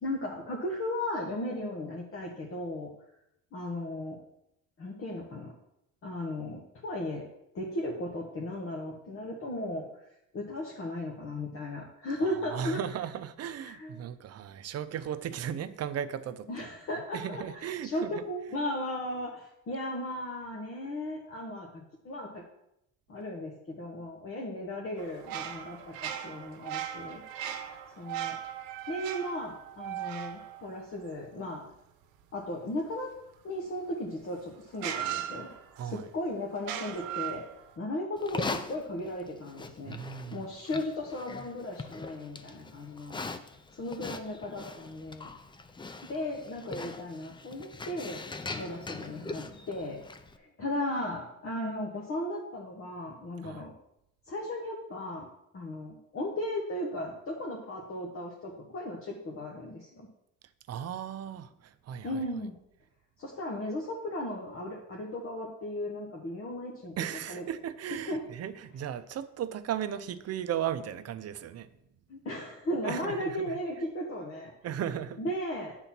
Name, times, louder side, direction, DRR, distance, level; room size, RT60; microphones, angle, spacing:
voice 1, 0.0-2.9 3.5-4.2 4.8-5.5 6.0-7.2 7.5-9.8 10.3-12.8 13.6-14.0 16.5-22.4 23.1-27.2 28.0-28.4 28.9-31.6 32.3-33.1 33.4-35.5 35.8-37.4 37.8-40.0 40.3-43.2 43.7-45.3 46.1-48.3 48.5-50.0 50.4-53.7 54.3-55.3 55.5-60.1 62.0-62.5 63.2-66.9 67.3-67.4 68.1-68.2 72.1-74.5 75.2-75.8, left 1 dB, 40° left, -2 dB, 1.3 m, -36 dB
voice 2, 12.5-16.7 17.1-18.2 35.8-36.1 39.9-40.5 53.4-53.6 60.7-62.2 67.0-71.7 72.8-73.5 74.6-75.2, right 9 dB, 45° right, 12 dB, 0.6 m, -36 dB
sound 1, 25.0-31.6 33.9-34.0 34.8-36.0 36.6-37.7, right 10 dB, 90° right, 0.8 m, -38 dB
Livestock farm animals working animals, 38.2-50.4, left 3 dB, 15° left, 0.5 m, -41 dB
8.8 x 4.0 x 5.9 m, 0.81 s
cardioid pair, 110°, 34 cm